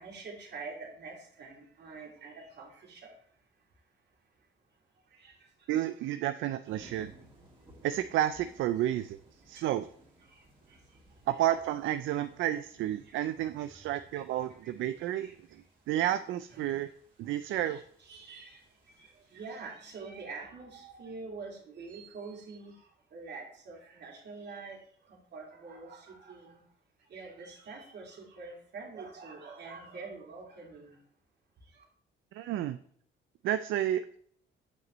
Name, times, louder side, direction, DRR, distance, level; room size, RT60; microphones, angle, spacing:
voice 1, 0.0-3.1 5.1-5.3 5.7-5.8 6.1-6.3 6.7-7.0 9.6-9.7 10.3-10.8 11.3-11.4 13.0-13.2 13.6-13.7 14.1-14.2 14.6-14.7 15.0-15.4 16.5-16.7 17.4-18.6 18.9-24.8 25.1-26.6 27.1-31.0 31.7-31.8, right 4 dB, 60° right, -1 dB, 2.5 m, -46 dB
voice 2, 5.7-7.1 7.8-9.2 9.5-9.9 11.3-15.3 15.9-16.9 17.2-17.8 32.3-32.8 33.4-34.0, right 12 dB, 80° right, 11 dB, 0.4 m, -31 dB
sound 1, 6.6-19.5, right 1 dB, 25° right, 2.6 m, -62 dB
7.7 x 6.1 x 3.0 m, 0.62 s
cardioid pair, 90°, 20 cm